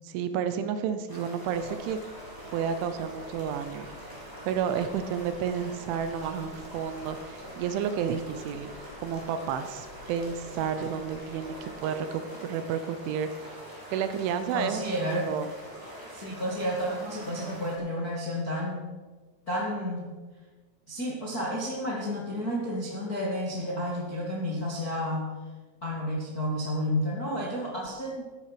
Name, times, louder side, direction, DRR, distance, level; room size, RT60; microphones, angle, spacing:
voice 1, 0.0-2.0 2.5-3.9 4.5-8.7 9.0-13.6 13.9-15.5, right 7 dB, 80° right, 10 dB, 3.0 m, -31 dB
sound 1, 1.1-17.8, right 1 dB, 5° right, 3.3 m, -44 dB
sound 2, 1.5-11.7, left 3 dB, 60° left, 4.9 m, -52 dB
voice 2, 14.5-15.3 16.1-18.9 19.5-20.0 20.9-25.2 25.8-28.3, equal, 40° left, -4 dB, 1.3 m, -31 dB
13.5 x 11.5 x 5.9 m, 1.3 s
omnidirectional pair, 5.8 m